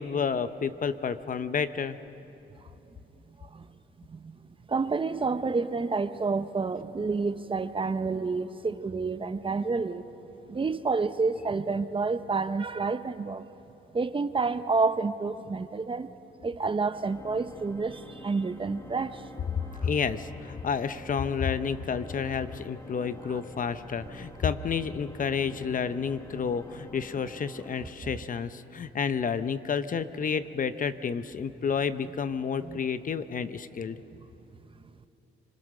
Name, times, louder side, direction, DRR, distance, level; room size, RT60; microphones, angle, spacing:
voice 1, 0.0-2.0 19.8-34.0, left 6 dB, 45° left, 12 dB, 0.8 m, -30 dB
voice 2, 4.7-10.0 10.5-13.4 13.9-16.1 16.4-19.2 19.7-19.8 23.0-23.4 32.6-32.8, right 4 dB, 25° right, 11 dB, 0.8 m, -29 dB
Organ, 16.8-28.7, left 1 dB, 15° left, 1.1 m, -47 dB
26.5 x 20.5 x 6.6 m, 2.9 s
cardioid pair, 90°, 20 cm